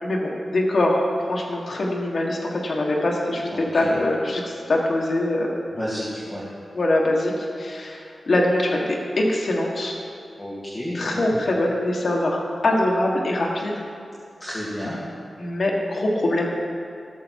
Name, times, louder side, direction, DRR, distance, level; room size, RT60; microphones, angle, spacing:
voice 1, 0.0-5.5 6.7-10.0 10.9-13.7 15.4-16.5, left 1 dB, 55° left, -2 dB, 1.6 m, -23 dB
voice 2, 3.5-4.0 5.7-6.5 10.4-11.1 14.4-15.0, equal, 15° left, -8 dB, 2.2 m, -31 dB
17.0 x 6.9 x 4.7 m, 2.3 s
wide cardioid pair, 100°, 0 cm